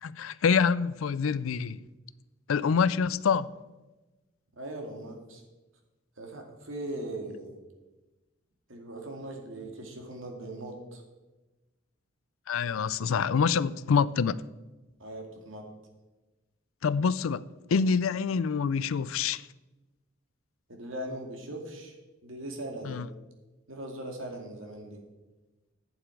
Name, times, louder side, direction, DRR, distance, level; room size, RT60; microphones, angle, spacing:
voice 1, 0.0-1.8 2.5-3.5 12.5-14.4 16.8-17.4 17.7-19.4 22.8-23.1, left 6 dB, 85° left, 0.4 m, -26 dB
voice 2, 4.5-5.4 6.2-7.6 8.7-11.0 15.0-15.7 20.7-21.9 22.2-23.0 23.7-25.0, right 1 dB, 80° right, 2.1 m, -39 dB
11.5 x 8.7 x 4.6 m
head